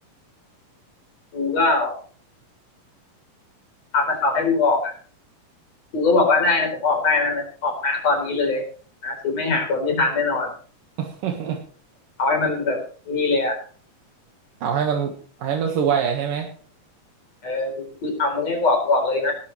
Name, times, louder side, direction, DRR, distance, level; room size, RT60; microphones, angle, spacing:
voice 1, 1.3-2.0 3.9-4.9 5.9-8.6 9.0-10.5 12.2-12.8 13.1-13.6 17.4-19.3, left 3 dB, 50° left, 2 dB, 5.3 m, -21 dB
voice 2, 11.0-11.6 14.6-15.1 15.4-16.5, right 7 dB, 80° right, 2 dB, 3.3 m, -24 dB
18.0 x 13.0 x 3.3 m, 0.43 s
omnidirectional pair, 3.8 m